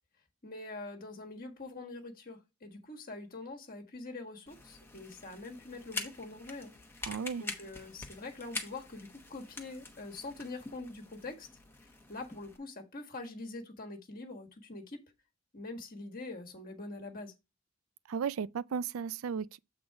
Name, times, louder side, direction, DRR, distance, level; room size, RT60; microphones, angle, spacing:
voice 1, 0.4-6.7 7.4-11.5 11.8-15.0 15.5-17.3, left 2 dB, 45° left, 1.4 m, -44 dB
sound 1, 4.5-12.6, left 3 dB, 10° left, 0.9 m, -45 dB
voice 2, 7.0-7.4 18.1-19.6, right 6 dB, 90° right, 0.4 m, -35 dB
7.8 x 3.9 x 4.6 m
head